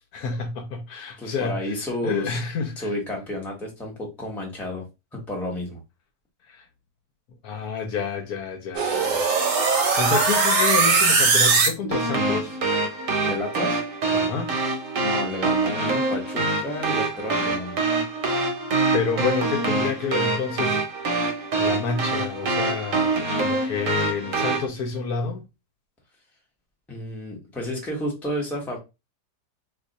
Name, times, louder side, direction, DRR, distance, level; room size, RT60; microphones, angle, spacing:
voice 1, 0.1-1.6 2.0-2.9 6.5-6.6 7.4-9.4 9.9-12.6 14.1-14.6 18.9-21.2 21.6-25.4, left 5 dB, 70° left, 1.1 m, -29 dB
voice 2, 1.2-2.4 2.8-4.8 5.1-5.8 13.2-13.8 15.0-17.8 26.9-28.8, left 1 dB, ahead, 0.6 m, -31 dB
sound 1, 8.7-24.7, right 3 dB, 60° right, 1.0 m, -23 dB
2.7 x 2.4 x 3.9 m
omnidirectional pair, 1.8 m